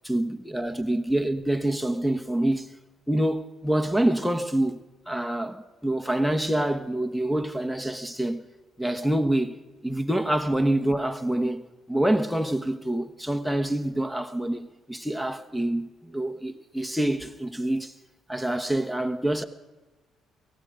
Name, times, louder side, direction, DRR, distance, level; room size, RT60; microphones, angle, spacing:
voice 1, 0.0-2.7 3.1-8.5 8.8-9.6 9.8-11.6 11.9-17.9 18.3-19.4, right 1 dB, ahead, 1.2 m, -26 dB
18.0 x 15.0 x 5.2 m
supercardioid pair, 75°, 0 cm